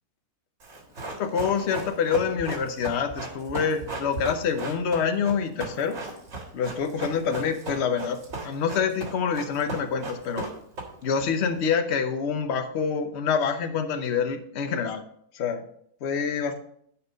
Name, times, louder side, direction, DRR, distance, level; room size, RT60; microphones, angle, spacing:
Run, 0.6-11.2 11.5-11.6, right 3 dB, 50° right, 1.9 m, -36 dB
voice 1, 1.2-6.0 6.5-8.2 8.4-10.5 11.0-15.0 15.3-15.6 16.0-16.6, left 6 dB, 50° left, 8 dB, 1.0 m, -26 dB
10.0 x 4.4 x 5.2 m, 0.68 s
omnidirectional pair, 1.6 m